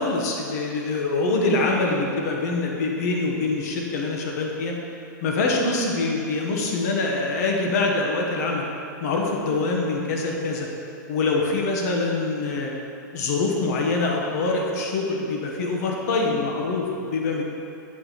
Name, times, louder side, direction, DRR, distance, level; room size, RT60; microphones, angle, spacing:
voice 1, 0.0-4.7 5.2-8.6 9.0-10.7 11.1-12.7 13.1-17.4, left 3 dB, 55° left, 0 dB, 1.2 m, -24 dB
8.6 x 4.5 x 4.1 m, 2.7 s
hypercardioid pair, 140°, 10 cm